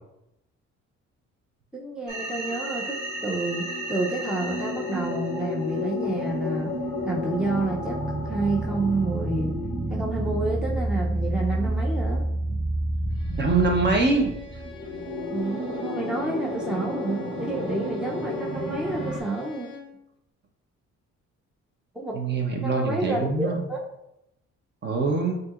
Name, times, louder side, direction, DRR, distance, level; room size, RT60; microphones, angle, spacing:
voice 1, 1.7-6.7 7.0-8.0 8.3-9.5 9.9-12.2 15.3-19.7 21.9-22.1 22.6-23.8, right 2 dB, 5° right, -2 dB, 0.6 m, -29 dB
sound 1, 2.1-19.2, equal, 70° right, 1.4 m, -30 dB
Bowed string instrument, 13.1-20.0, left 4 dB, 15° left, 0.9 m, -45 dB
voice 2, 13.4-14.3 22.1-23.6 24.8-25.4, right 3 dB, 35° right, 2 dB, 0.9 m, -23 dB
7.2 x 2.7 x 2.4 m, 0.85 s
cardioid pair, 90°, 30 cm